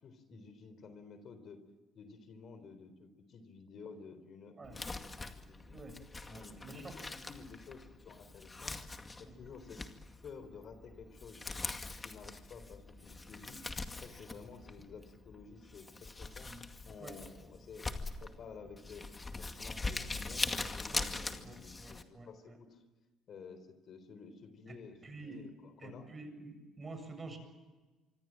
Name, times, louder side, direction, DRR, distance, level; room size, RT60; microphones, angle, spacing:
voice 1, 0.0-1.6 2.0-5.8 6.3-8.8 9.2-9.8 10.2-11.6 12.0-13.6 14.0-16.5 16.8-19.1 19.4-22.8 23.3-26.1, left 5 dB, 50° left, 11 dB, 4.0 m, -52 dB
Crumpling crinkling, 4.6-22.0, left 3 dB, 20° left, 2.2 m, -42 dB
voice 2, 6.3-6.9 9.2-9.4 16.5-16.6 17.0-17.2 20.9-21.1 21.4-22.3 25.0-25.4 25.8-27.4, right 3 dB, 25° right, 7 dB, 7.7 m, -48 dB
25.5 x 25.0 x 7.6 m, 1.2 s
cardioid pair, 105°, 0 cm